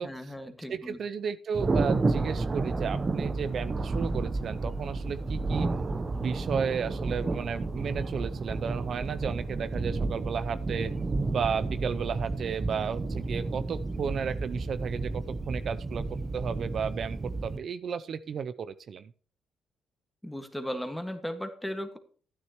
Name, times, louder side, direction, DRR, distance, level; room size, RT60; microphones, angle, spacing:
voice 1, 0.0-1.0 20.2-22.0, equal, 5° left, 7 dB, 1.8 m, -36 dB
voice 2, 0.7-5.7 6.1-10.9 11.3-19.1, right 6 dB, 55° right, 13 dB, 0.5 m, -33 dB
Thunder, 1.5-17.6, right 3 dB, 30° right, 0.9 m, -31 dB
12.0 x 9.5 x 3.0 m, 0.42 s
cardioid pair, 90°, 0 cm